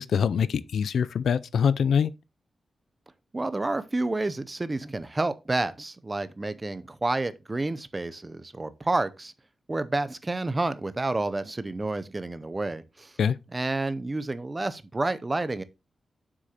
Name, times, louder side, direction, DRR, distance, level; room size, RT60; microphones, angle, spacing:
voice 1, 0.0-2.1 13.2-13.4, left 7 dB, 90° left, 0.4 m, -24 dB
voice 2, 3.3-9.3 9.7-13.1 13.5-15.6, right 2 dB, 20° right, 0.5 m, -29 dB
7.6 x 6.3 x 2.8 m
wide cardioid pair, 145°, 0 cm